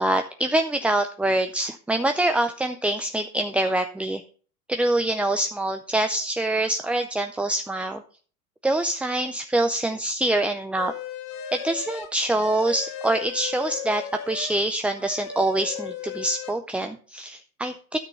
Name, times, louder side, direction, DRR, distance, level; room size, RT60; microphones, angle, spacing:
voice 1, 0.0-4.2 4.7-8.0 8.6-10.9 11.5-18.0, right 1 dB, 5° right, 7 dB, 0.4 m, -25 dB
sound 1, 10.8-14.6 14.9-16.5, left 8 dB, 55° left, 2.3 m, -36 dB
12.5 x 5.9 x 5.5 m, 0.42 s
hypercardioid pair, 95°, 43 cm